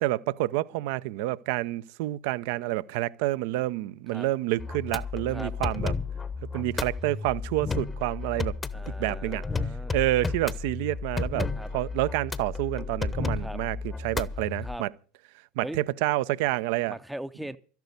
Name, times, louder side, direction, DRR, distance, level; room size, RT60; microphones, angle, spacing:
voice 1, 0.0-5.9 6.5-8.5 9.0-9.4 9.9-11.5 11.7-14.9 15.6-17.0, right 17 dB, 60° right, 0.6 m, -28 dB
sound 1, 4.6-14.8, left 4 dB, 20° left, 0.9 m, -32 dB
voice 2, 8.7-9.9 11.5-11.7 13.4-13.6 14.6-14.8 15.6-15.8 16.9-17.6, right 1 dB, 5° right, 0.6 m, -39 dB
13.0 x 10.5 x 6.7 m
hypercardioid pair, 85°, 0 cm